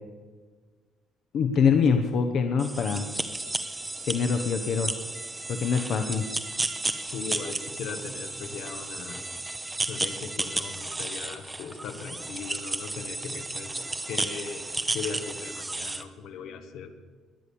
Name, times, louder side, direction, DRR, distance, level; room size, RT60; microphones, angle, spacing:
voice 1, 1.3-3.1 4.1-4.9 5.5-6.3, left 6 dB, 60° left, 5 dB, 1.0 m, -24 dB
sound 1, 2.6-16.0, right 2 dB, 10° right, 0.8 m, -33 dB
voice 2, 7.1-9.2 9.8-13.7 14.1-14.6 14.9-17.0, left 6 dB, 80° left, 7 dB, 1.6 m, -38 dB
21.0 x 8.4 x 7.2 m, 1.5 s
cardioid pair, 130°, 0 cm